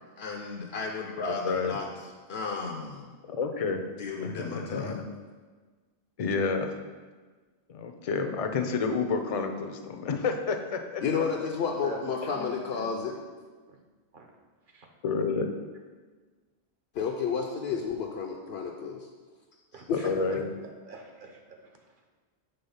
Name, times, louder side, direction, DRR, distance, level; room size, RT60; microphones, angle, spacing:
voice 1, 0.2-1.9 2.3-3.1 3.7-5.0 11.0-13.2 16.9-19.1 19.9-20.1, left 5 dB, 75° left, 1 dB, 0.9 m, -32 dB
voice 2, 1.3-1.8 3.3-3.8 4.2-5.0 6.2-6.7 7.7-11.0 12.3-12.5 15.0-15.5 19.9-20.4, left 4 dB, 45° left, 6 dB, 0.5 m, -30 dB
voice 3, 11.8-12.2 13.7-13.8 14.1-14.3 14.7-14.9 19.7-20.1 20.8-22.1, right 4 dB, 55° right, 3 dB, 0.9 m, -44 dB
6.8 x 3.5 x 5.5 m, 1.4 s
omnidirectional pair, 1.1 m